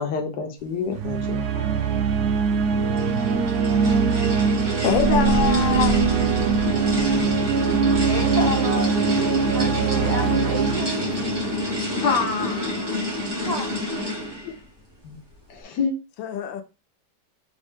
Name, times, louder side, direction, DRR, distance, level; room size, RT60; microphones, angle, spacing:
voice 1, 0.0-2.3 9.7-9.8 11.9-13.0 14.4-14.5 15.0-15.2 15.5-15.9, left 5 dB, 70° left, 1.4 m, -28 dB
sound 1, 0.9-12.5, right 5 dB, 70° right, 1.0 m, -22 dB
sound 2, 2.4-14.6, left 1 dB, 15° right, 1.3 m, -29 dB
voice 2, 4.8-6.0 16.2-16.6, left 8 dB, 85° left, 1.4 m, -24 dB
sound 3, 4.9-9.4 9.7-9.8, right 1 dB, 40° left, 1.5 m, -31 dB
voice 3, 8.0-9.0 9.4-11.1 11.6-11.7 13.4-14.3, equal, 35° right, 0.6 m, -31 dB
3.4 x 3.2 x 3.5 m
omnidirectional pair, 2.0 m